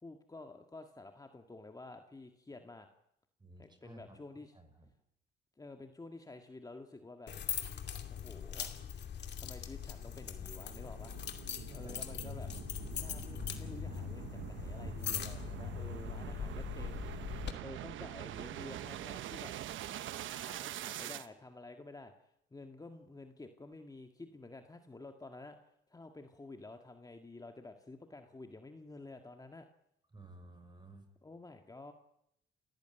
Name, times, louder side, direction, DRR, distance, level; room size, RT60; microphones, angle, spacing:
voice 1, 0.0-2.9 3.6-4.5 5.6-7.3 8.1-8.7 9.4-11.2 11.7-12.5 13.0-19.5 20.3-29.7 31.2-31.9, left 2 dB, 20° left, 5 dB, 1.9 m, -51 dB
voice 2, 3.4-4.2 4.5-4.9 9.1-9.2 11.6-12.0 30.1-31.1, right 2 dB, 20° right, 7 dB, 6.3 m, -54 dB
sound 1, 7.3-17.5, left 8 dB, 60° left, 2.6 m, -41 dB
sound 2, 9.8-21.3, right 12 dB, 80° right, 1.1 m, -45 dB
29.0 x 15.0 x 9.2 m, 0.79 s
cardioid pair, 90°, 20 cm